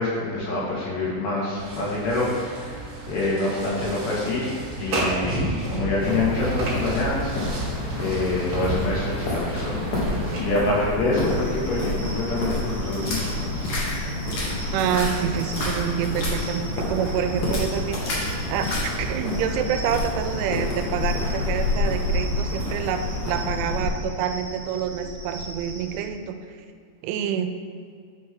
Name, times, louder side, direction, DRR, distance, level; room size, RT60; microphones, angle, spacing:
voice 1, 0.0-7.7 8.0-9.8 10.4-13.7, left 2 dB, 80° left, -7 dB, 4.4 m, -26 dB
sound 1, 1.5-10.4, right 2 dB, 45° right, 2.7 m, -32 dB
sound 2, 6.0-23.9, left 1 dB, 60° left, 2.3 m, -28 dB
sound 3, 11.1-26.1, right 2 dB, 60° right, 2.4 m, -38 dB
voice 2, 14.7-18.0 18.5-18.7 19.0-26.4 27.0-27.5, right 8 dB, 85° right, 7 dB, 2.9 m, -27 dB
9.9 x 5.4 x 3.7 m, 2.2 s
omnidirectional pair, 5.4 m